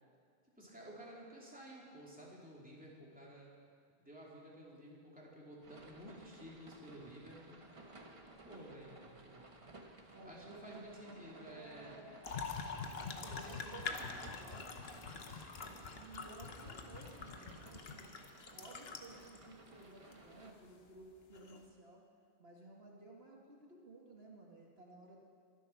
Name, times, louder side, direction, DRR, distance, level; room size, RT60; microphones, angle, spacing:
voice 1, 0.6-3.5 4.0-7.6 8.2-9.4 10.2-12.0 13.2-14.4, equal, 10° right, -5 dB, 3.0 m, -53 dB
sound 1, 5.6-20.5, right 2 dB, 30° right, 1.2 m, -57 dB
voice 2, 10.1-12.4 13.0-15.4 15.9-18.1 18.5-22.0 22.4-25.2, right 2 dB, 70° right, -2 dB, 2.0 m, -56 dB
sound 2, 12.2-19.4 20.1-20.2 21.3-21.6, left 5 dB, 70° left, 1.3 m, -45 dB
23.0 x 8.3 x 5.9 m, 2.2 s
omnidirectional pair, 1.1 m